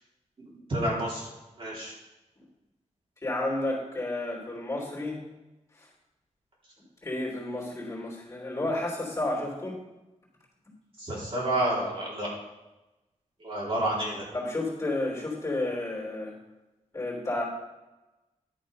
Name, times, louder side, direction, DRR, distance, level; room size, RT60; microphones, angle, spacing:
voice 1, 0.7-1.2 1.6-1.9 11.0-12.3 13.4-14.2, right 1 dB, 50° right, -6 dB, 3.7 m, -29 dB
voice 2, 3.2-5.2 5.7-5.9 7.0-9.8 14.3-16.3 16.9-17.4, left 2 dB, 25° left, -2 dB, 3.2 m, -31 dB
11.0 x 6.4 x 5.4 m, 1.0 s
wide cardioid pair, 150°, 12 cm